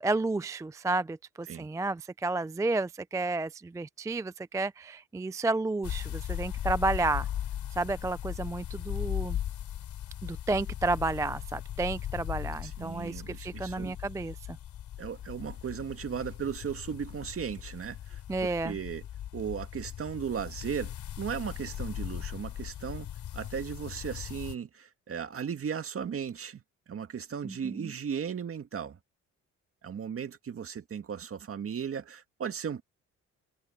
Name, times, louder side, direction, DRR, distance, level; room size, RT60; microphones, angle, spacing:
voice 1, 0.0-7.3 7.7-9.4 10.2-14.6 18.3-18.8 27.4-27.9, right 2 dB, 10° right, 0.4 m, -31 dB
sound 1, 5.8-24.6, left 11 dB, 75° left, 3.2 m, -38 dB
voice 2, 12.6-13.9 15.0-19.0 19.3-23.1 23.3-26.6 26.9-29.0 29.8-32.8, right 7 dB, 45° right, 2.1 m, -36 dB
cardioid pair, 90°, 30 cm